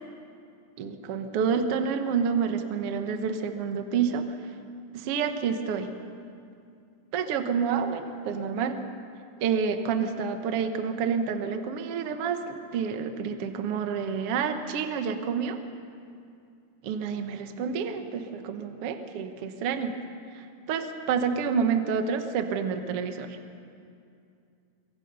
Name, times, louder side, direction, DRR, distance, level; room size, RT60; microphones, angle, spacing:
voice 1, 0.8-4.4 4.9-5.9 7.1-8.8 9.4-15.6 16.8-20.0 20.3-23.4, right 6 dB, 75° right, 7 dB, 1.3 m, -28 dB
23.5 x 23.5 x 5.5 m, 2.4 s
omnidirectional pair, 4.4 m